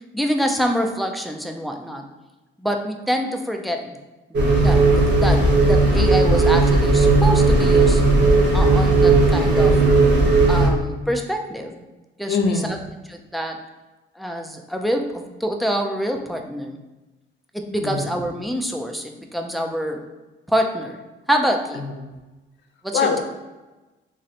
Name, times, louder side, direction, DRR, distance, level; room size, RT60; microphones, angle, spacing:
voice 1, 0.1-2.1 2.6-4.0 4.6-8.0 8.5-9.7 10.5-11.8 12.2-12.4 12.6-12.8 13.1-13.6 14.2-16.8 17.5-20.0 20.5-21.0 21.3-21.9 22.8-23.0, equal, ahead, 3 dB, 0.4 m, -26 dB
sound 1, 4.3-10.7, right 3 dB, 60° right, 0.9 m, -16 dB
voice 2, 12.3-12.7 17.8-18.1 21.7-22.1 22.9-23.2, left 4 dB, 60° left, 4 dB, 0.6 m, -23 dB
3.0 x 2.5 x 4.1 m, 1.1 s
cardioid pair, 90°, 20 cm